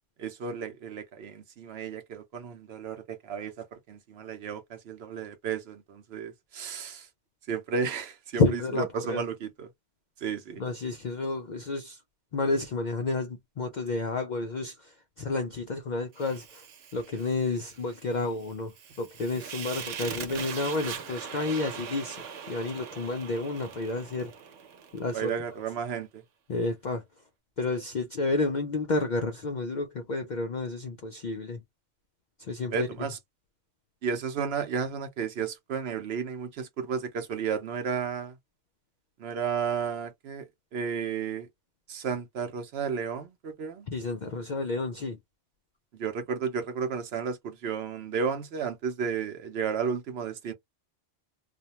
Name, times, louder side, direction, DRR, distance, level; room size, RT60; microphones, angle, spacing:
voice 1, 0.2-7.1 7.5-8.4 8.8-9.7 10.2-10.6 25.1-26.2 32.7-33.2 34.0-38.3 39.2-40.4 40.7-41.5 41.9-43.9 45.9-50.5, right 6 dB, 65° right, 0.8 m, -33 dB
voice 2, 8.4-9.2 10.6-12.0 12.3-16.7 16.9-24.3 24.9-25.3 26.5-27.0 27.6-31.6 32.4-33.1 43.9-45.2, left 3 dB, 60° left, 0.4 m, -30 dB
Fire, 16.1-25.4, right 7 dB, 90° right, 1.1 m, -41 dB
2.4 x 2.1 x 2.8 m
omnidirectional pair, 1.3 m